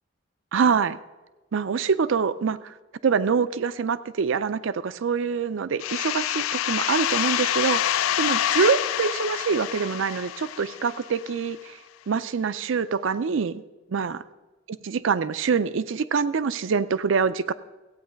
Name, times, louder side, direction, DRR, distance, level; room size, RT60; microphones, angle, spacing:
voice 1, 0.5-1.0 1.5-2.7 3.0-11.8 12.1-13.6 13.9-14.2 14.8-17.5, right 5 dB, 70° right, 14 dB, 0.4 m, -25 dB
sound 1, 5.8-11.3, left 11 dB, 90° left, 0.3 m, -27 dB
15.5 x 8.7 x 5.1 m, 1.2 s
head